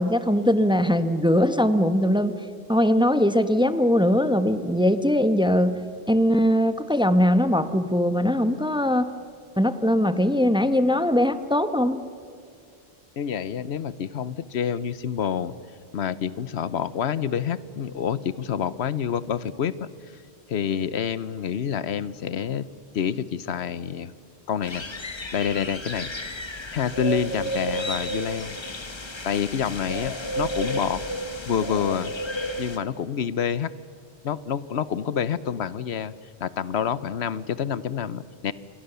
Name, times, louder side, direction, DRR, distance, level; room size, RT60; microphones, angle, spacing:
voice 1, 0.0-2.3 2.7-5.8 6.1-9.1 9.6-12.0, equal, 5° right, 11 dB, 0.9 m, -21 dB
voice 2, 13.2-15.5 15.9-19.9 20.5-22.7 22.9-24.1 24.5-24.8 25.3-26.1 26.7-28.6 29.2-31.0 31.5-32.1 32.6-33.7 34.2-36.1 36.4-38.5, left 8 dB, 85° left, 16 dB, 1.1 m, -27 dB
sound 1, 24.6-32.8, equal, 25° left, 1.3 m, -32 dB
27.5 x 23.0 x 6.9 m, 2.4 s
omnidirectional pair, 1.1 m